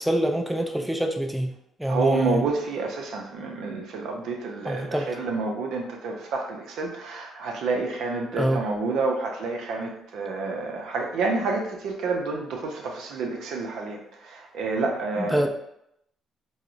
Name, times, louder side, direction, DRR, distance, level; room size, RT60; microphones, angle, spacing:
voice 1, 0.0-1.5 1.8-2.4 4.7-5.1 8.3-8.6 15.2-15.5, right 1 dB, 5° right, 3 dB, 0.4 m, -25 dB
voice 2, 1.9-14.0 14.3-15.5, right 3 dB, 70° right, 1 dB, 0.5 m, -29 dB
3.5 x 2.0 x 2.4 m, 0.77 s
hypercardioid pair, 55°, 0 cm